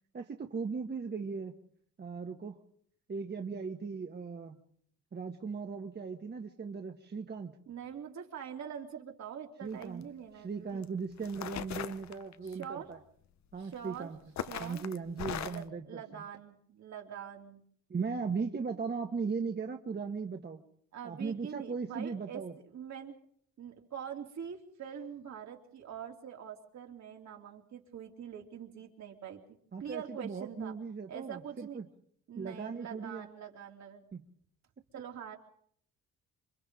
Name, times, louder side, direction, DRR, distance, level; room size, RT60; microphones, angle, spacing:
voice 1, 0.1-1.5 2.0-2.6 3.1-4.6 5.1-7.5 9.6-10.0 10.3-13.0 13.5-14.2 14.6-16.2 17.9-20.6 21.0-22.5 29.7-31.8 32.3-33.3 34.1-34.2, right 5 dB, 35° right, 4 dB, 1.4 m, -38 dB
voice 2, 7.7-10.9 12.4-12.9 13.6-14.1 14.5-14.8 15.4-17.6 20.9-23.2 23.6-29.4 29.8-30.7 31.1-31.8 32.3-34.0 34.9-35.4, right 8 dB, 65° right, 2 dB, 3.1 m, -44 dB
sound 1, 9.7-10.0 10.8-10.9 11.2-12.6 13.7-14.0 14.4-15.7, left 10 dB, 65° left, 0.9 m, -39 dB
27.5 x 24.5 x 3.8 m, 0.64 s
cardioid pair, 90°, 30 cm